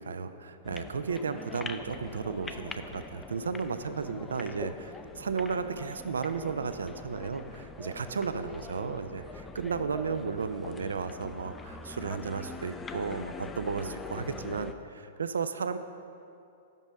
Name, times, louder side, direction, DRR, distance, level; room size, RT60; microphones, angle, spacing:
voice 1, 0.0-15.8, right 5 dB, 85° right, 10 dB, 0.3 m, -34 dB
sound 1, 0.6-14.7, left 4 dB, 15° left, 0.3 m, -43 dB
6.1 x 5.3 x 5.4 m, 2.6 s
hypercardioid pair, 115°, 0 cm